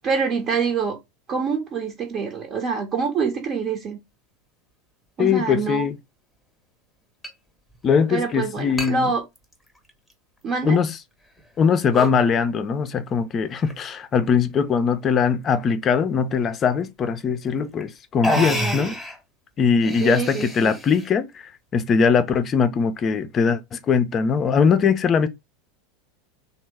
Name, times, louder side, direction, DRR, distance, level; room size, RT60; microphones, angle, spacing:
voice 1, 0.0-1.0 1.3-4.0 5.2-5.9 8.1-9.2 10.4-10.8 18.3-18.9 20.0-20.7, right 5 dB, 40° right, 0.7 m, -25 dB
voice 2, 5.2-6.0 7.8-9.1 10.6-11.0 11.6-19.0 19.6-25.3, left 6 dB, 35° left, 0.5 m, -21 dB
sound 1, 5.5-5.6 7.2-7.3 7.7-7.8 8.8-8.9 9.4-10.1 10.7-10.8 11.4-11.6 11.9-12.2 13.4-13.9 14.7-15.1 17.0-17.1 17.8-17.9 18.2-19.2 19.7-21.1, left 1 dB, ahead, 0.9 m, -29 dB
3.0 x 2.0 x 3.4 m
hypercardioid pair, 85°, 0 cm